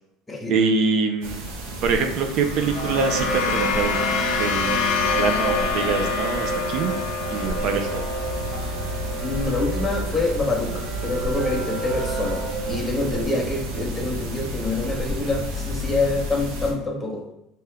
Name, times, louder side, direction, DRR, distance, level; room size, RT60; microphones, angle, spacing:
voice 1, 0.5-1.5 1.8-4.1 4.4-7.0 7.3-8.0, right 5 dB, 55° right, 6 dB, 0.4 m, -24 dB
sound 1, 1.2-16.7, right 1 dB, 75° right, 0.8 m, -31 dB
sound 2, 2.3-10.7, left 6 dB, 80° left, 0.6 m, -28 dB
sound 3, 2.7-13.2, right 3 dB, 30° right, 1.1 m, -31 dB
voice 2, 9.2-17.2, left 2 dB, 10° left, 0 dB, 0.7 m, -26 dB
3.5 x 2.8 x 3.1 m, 0.85 s
cardioid pair, 140°, 0 cm